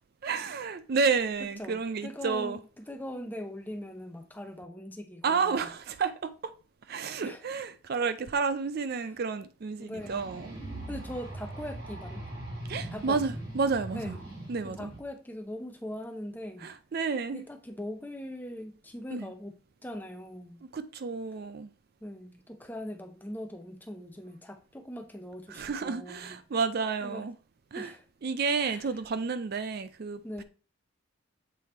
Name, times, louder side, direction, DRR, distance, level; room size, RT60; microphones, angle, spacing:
voice 1, 0.2-2.6 5.2-6.5 6.9-10.6 12.7-14.2 14.5-14.9 16.6-17.4 19.1-19.3 20.7-21.7 25.5-27.3 27.7-27.9 28.2-30.4, right 5 dB, 45° right, 0.4 m, -31 dB
voice 2, 1.4-5.6 7.2-7.4 9.8-10.3 10.9-12.3 12.9-13.2 13.9-14.2 14.6-16.7 17.3-20.6 22.0-26.4 27.0-27.2 27.8-28.0 28.6-28.8 30.2-30.4, left 1 dB, 10° left, 0.6 m, -41 dB
sound 1, 10.0-15.0, right 1 dB, 80° right, 3.0 m, -41 dB
7.5 x 3.3 x 4.1 m
head